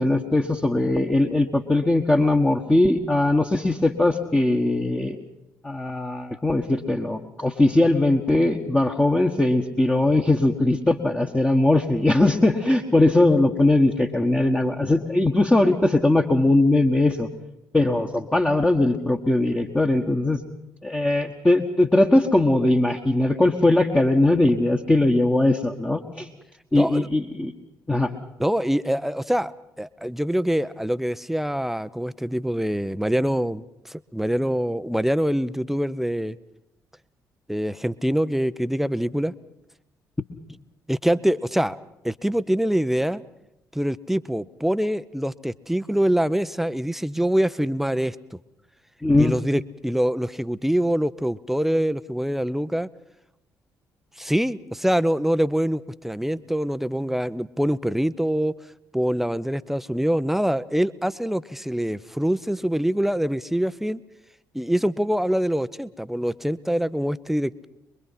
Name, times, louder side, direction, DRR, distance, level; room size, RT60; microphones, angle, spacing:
voice 1, 0.0-5.2 5.6-17.3 17.7-20.4 20.8-26.3 26.7-27.5 27.9-28.1 49.0-49.3, left 2 dB, 15° left, 2 dB, 1.5 m, -20 dB
voice 2, 26.7-27.1 28.4-29.5 29.8-36.4 37.5-39.3 40.9-41.8 42.0-43.2 43.7-48.4 49.2-52.9 54.2-58.5 58.9-64.0 64.5-67.7, equal, 5° right, 15 dB, 0.8 m, -24 dB
24.5 x 22.5 x 5.8 m, 0.87 s
figure-of-eight pair, 40°, 9 cm